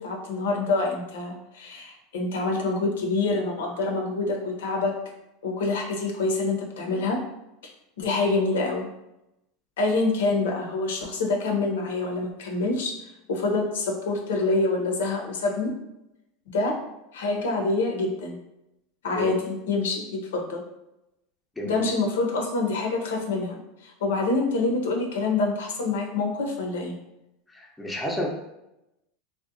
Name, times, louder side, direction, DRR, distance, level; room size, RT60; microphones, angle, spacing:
voice 1, 0.0-4.9 5.4-7.2 7.6-7.7 8.0-8.9 9.8-12.9 13.3-15.8 16.5-16.8 17.1-18.4 19.0-20.6 21.6-27.0, left 3 dB, 80° left, 1 dB, 0.5 m, -26 dB
voice 2, 21.6-21.9 27.5-28.3, left 1 dB, 10° left, -1 dB, 0.5 m, -31 dB
2.6 x 2.0 x 2.5 m, 0.89 s
hypercardioid pair, 95°, 0 cm